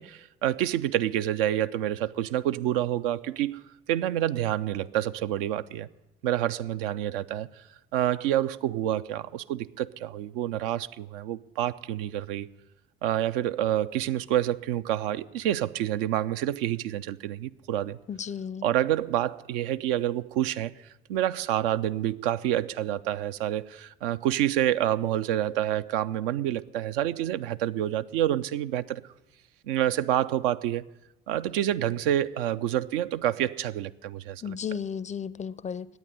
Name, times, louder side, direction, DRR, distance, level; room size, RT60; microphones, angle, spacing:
voice 1, 0.0-3.6 3.9-5.9 6.2-7.7 7.9-12.5 13.0-18.0 18.6-29.0 29.6-30.9 31.3-34.6, right 12 dB, 70° right, 0.4 m, -28 dB
voice 2, 18.1-18.7 34.4-35.9, left 7 dB, 25° left, 0.4 m, -34 dB
10.5 x 9.0 x 10.0 m
figure-of-eight pair, 50°, 29 cm